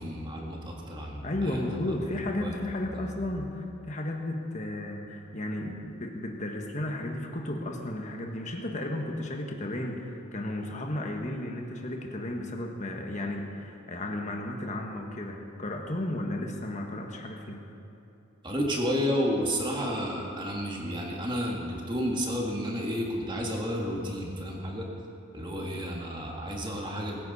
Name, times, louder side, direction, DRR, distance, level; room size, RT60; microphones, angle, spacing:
voice 1, 0.0-2.0 2.4-2.6 2.9-3.1 18.4-24.9 25.3-27.2, equal, 20° right, -1 dB, 1.9 m, -31 dB
voice 2, 1.2-17.7, left 1 dB, 35° left, 2 dB, 1.5 m, -34 dB
22.0 x 10.0 x 4.3 m, 2.9 s
head